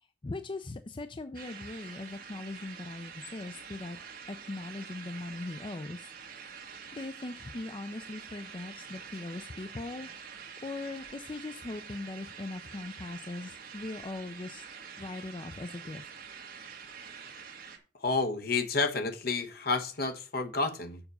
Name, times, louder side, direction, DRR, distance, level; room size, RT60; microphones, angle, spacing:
voice 1, 0.2-4.0 4.3-6.1 6.9-10.3 10.6-14.6 15.0-16.0, left 2 dB, 30° left, 0.5 m, -40 dB
sound 1, 1.3-17.8, right 6 dB, 55° right, 1.5 m, -46 dB
voice 2, 18.0-21.0, left 3 dB, 60° left, 1.1 m, -30 dB
7.1 x 5.0 x 6.8 m
head